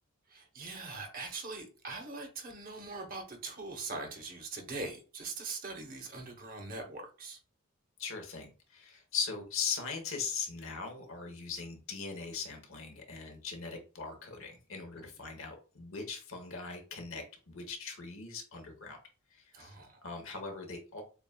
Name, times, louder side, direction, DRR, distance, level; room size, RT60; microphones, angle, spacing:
voice 1, 0.3-7.4 15.0-15.1 19.5-20.0, right 3 dB, 40° right, 0.8 m, -42 dB
voice 2, 8.0-19.0 19.3-19.7 20.0-21.0, left 5 dB, 65° left, 0.9 m, -40 dB
6.9 x 2.3 x 2.2 m
head